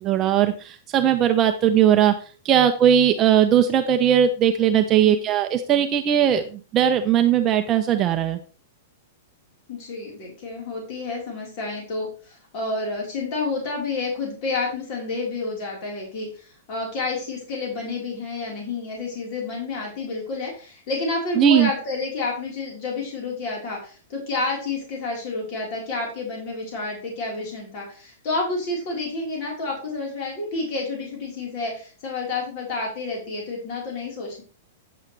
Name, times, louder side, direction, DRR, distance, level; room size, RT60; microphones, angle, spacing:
voice 1, 0.0-2.1 2.4-8.4 21.4-21.7, right 9 dB, 25° right, 6 dB, 0.7 m, -19 dB
voice 2, 4.9-5.3 9.7-34.4, left 3 dB, 40° left, -2 dB, 4.2 m, -30 dB
9.3 x 8.1 x 3.3 m, 0.37 s
supercardioid pair, 155°, 0 cm